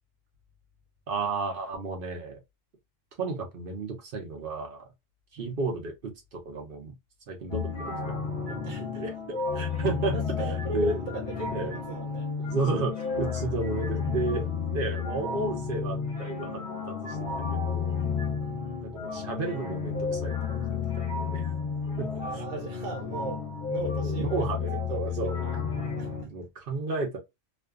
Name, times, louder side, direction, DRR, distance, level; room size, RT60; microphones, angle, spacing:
voice 1, 1.1-2.4 3.2-4.9 5.3-6.9 7.3-8.2 8.5-10.5 10.7-11.0 11.5-11.7 12.4-17.2 17.5-18.0 18.8-21.5 22.0-22.4 23.0-23.1 23.8-25.4 26.2-27.2, right 3 dB, 55° right, 0.7 m, -33 dB
sound 1, 7.5-26.2, left 5 dB, 45° left, 0.9 m, -32 dB
voice 2, 8.6-9.0 10.1-12.6 18.4-18.8 22.2-24.4 24.9-25.6 26.0-26.3, right 3 dB, 85° right, 1.0 m, -38 dB
2.5 x 2.3 x 2.3 m
omnidirectional pair, 1.3 m